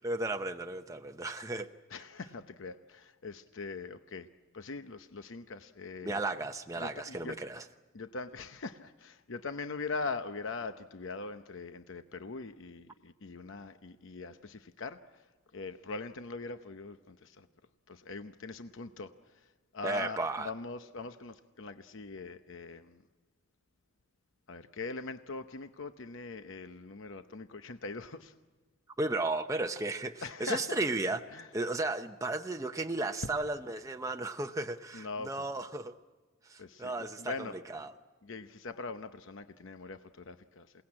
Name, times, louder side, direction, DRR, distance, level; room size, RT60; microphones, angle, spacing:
voice 1, 0.0-1.7 6.0-7.7 19.8-20.5 29.0-35.9 36.4-37.9, right 2 dB, 15° right, 5 dB, 0.7 m, -34 dB
voice 2, 1.9-4.3 4.5-6.2 6.8-7.3 7.9-15.0 15.5-17.5 17.9-19.1 19.7-20.2 20.5-22.9 24.5-28.3 30.2-30.8 31.3-31.4 34.9-35.3 36.6-37.5 38.3-40.7, left 4 dB, 65° left, 9 dB, 0.8 m, -41 dB
28.0 x 18.0 x 8.7 m, 1.3 s
head